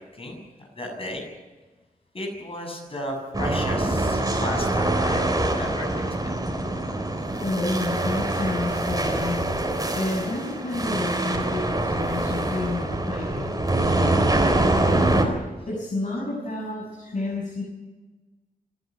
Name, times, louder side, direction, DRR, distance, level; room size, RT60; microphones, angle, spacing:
voice 1, 0.1-1.2 2.1-6.4, left 1 dB, 40° left, 1 dB, 7.1 m, -34 dB
sound 1, 3.3-15.2, right 2 dB, 25° right, 4.1 m, -24 dB
voice 2, 7.3-15.1 15.7-17.6, left 2 dB, 55° left, -2 dB, 6.6 m, -30 dB
27.5 x 11.5 x 9.5 m, 1.2 s
wide cardioid pair, 95°, 15 cm